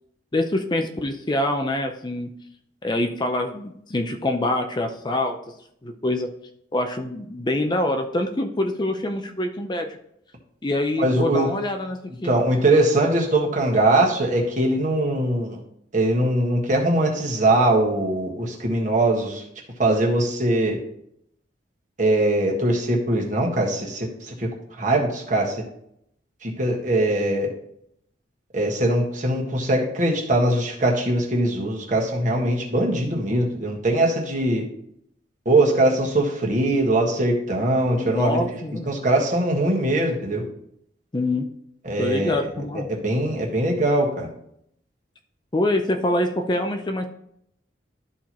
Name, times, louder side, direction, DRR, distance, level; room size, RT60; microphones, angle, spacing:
voice 1, 0.3-2.3 2.8-5.4 5.8-6.3 6.7-9.9 10.6-12.3 12.7-12.9 37.9-38.9 41.1-41.5 42.0-42.9 45.5-47.1, left 1 dB, 25° left, 4 dB, 0.5 m, -25 dB
voice 2, 11.0-11.5 12.2-15.6 15.9-19.4 19.8-20.8 22.0-24.5 24.8-25.6 26.4-27.5 28.5-34.6 35.4-38.4 38.9-40.4 41.8-42.4 42.7-44.3, right 1 dB, 40° right, -1 dB, 1.6 m, -21 dB
12.5 x 4.4 x 3.0 m, 0.74 s
head